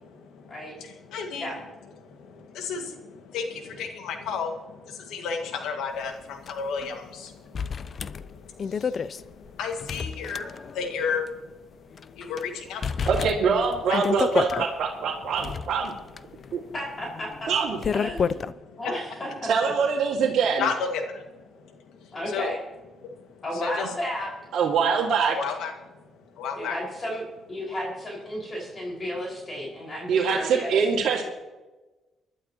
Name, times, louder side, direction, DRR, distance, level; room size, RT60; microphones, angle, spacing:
voice 1, 0.0-1.5 2.0-11.6 12.1-13.1 13.9-14.0 14.3-14.7 16.3-16.7 18.5-18.8 20.6-21.7 22.0-22.5 23.0-23.3 23.5-23.9 25.3-25.7 26.4-26.8, left 5 dB, 85° left, 4 dB, 2.0 m, -33 dB
sound 1, 6.5-6.6 6.8-6.9 7.5-10.9 11.3-11.4 12.0-12.4 12.8-14.7 15.2-18.5, left 6 dB, 45° left, 0.5 m, -30 dB
voice 2, 13.1-15.9 16.5-16.6 17.5-17.8 19.5-20.7 24.5-25.4 30.1-31.2, right 6 dB, 65° right, -5 dB, 2.3 m, -24 dB
voice 3, 16.7-17.5 17.9-18.5 18.8-19.5 22.1-22.6 23.4-24.3 26.6-27.2 27.5-30.7, equal, 30° left, -3 dB, 5.5 m, -33 dB
24.0 x 12.0 x 3.0 m, 1.1 s
cardioid pair, 90°, 0 cm